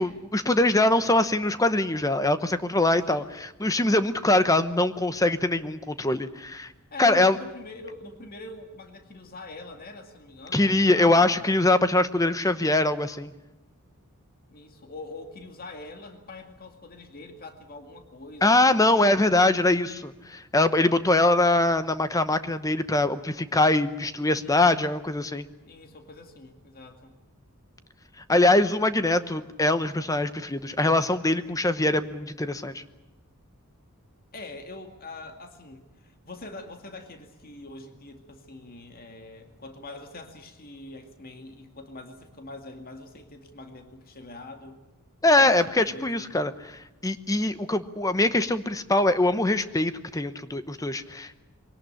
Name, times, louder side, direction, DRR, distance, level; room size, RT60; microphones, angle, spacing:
voice 1, 0.0-6.7 7.0-7.4 10.5-13.3 18.4-25.5 28.3-32.8 45.2-46.5 47.0-51.4, left 2 dB, 15° left, 11 dB, 0.9 m, -23 dB
voice 2, 6.9-11.6 14.5-18.7 24.3-24.9 25.6-27.1 34.3-44.8 45.4-46.4, left 2 dB, 45° left, 5 dB, 2.2 m, -43 dB
23.5 x 18.0 x 10.0 m, 1.0 s
head